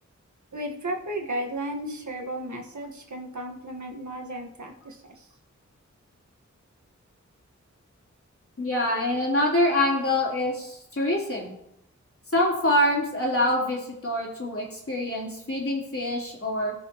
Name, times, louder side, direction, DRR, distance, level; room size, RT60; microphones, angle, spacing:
voice 1, 0.5-5.3, right 1 dB, 75° right, 1 dB, 1.6 m, -34 dB
voice 2, 8.6-11.5 12.3-16.7, left 1 dB, 50° left, -4 dB, 3.4 m, -25 dB
18.5 x 6.3 x 3.0 m, 0.80 s
wide cardioid pair, 75°, 30 cm